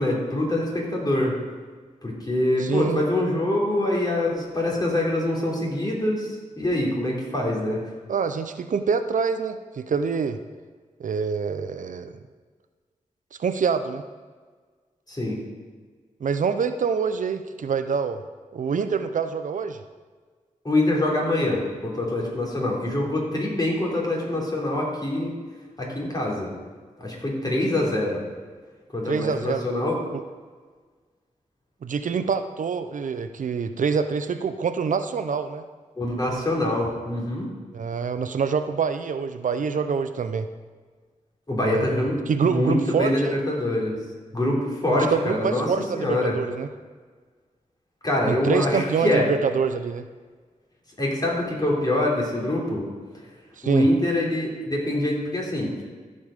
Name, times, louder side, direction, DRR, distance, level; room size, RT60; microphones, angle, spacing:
voice 1, 0.0-1.3 2.0-6.3 6.6-7.8 15.1-15.4 20.7-25.3 25.8-26.5 27.0-28.2 28.9-29.9 36.0-37.4 41.5-44.0 44.3-45.7 46.0-46.3 48.0-49.2 51.0-52.8 53.6-55.7, left 1 dB, 30° left, -3 dB, 3.5 m, -24 dB
voice 2, 2.6-3.0 8.1-10.4 11.0-12.2 13.4-14.0 16.2-18.2 18.5-19.8 29.1-29.8 30.1-30.2 31.8-35.6 37.7-40.5 41.6-43.4 44.9-46.7 48.3-50.1 53.6-53.9, right 6 dB, 70° right, 9 dB, 0.6 m, -26 dB
14.5 x 5.4 x 5.1 m, 1.5 s
cardioid pair, 65°, 14 cm